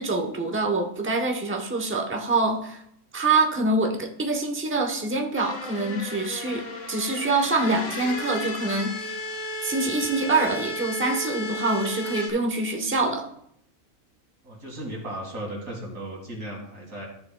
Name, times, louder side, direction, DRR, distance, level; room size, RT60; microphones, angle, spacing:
voice 1, 0.0-2.8 3.1-9.2 9.6-13.3, right 3 dB, 10° right, 3 dB, 0.7 m, -25 dB
sound 1, 5.3-12.3, left 1 dB, 60° left, 1.5 m, -34 dB
voice 2, 14.4-17.1, right 1 dB, 85° right, 1 dB, 2.6 m, -36 dB
13.0 x 6.8 x 2.3 m, 0.73 s
omnidirectional pair, 1.5 m